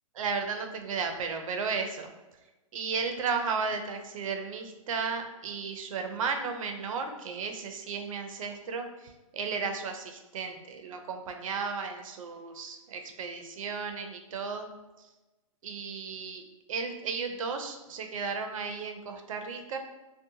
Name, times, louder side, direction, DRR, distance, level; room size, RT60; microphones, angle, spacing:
voice 1, 0.2-2.1 2.7-14.7 15.6-16.4 16.7-19.8, right 5 dB, 70° right, 5 dB, 0.5 m, -34 dB
2.7 x 2.1 x 2.7 m, 1.1 s
hypercardioid pair, 140°, 18 cm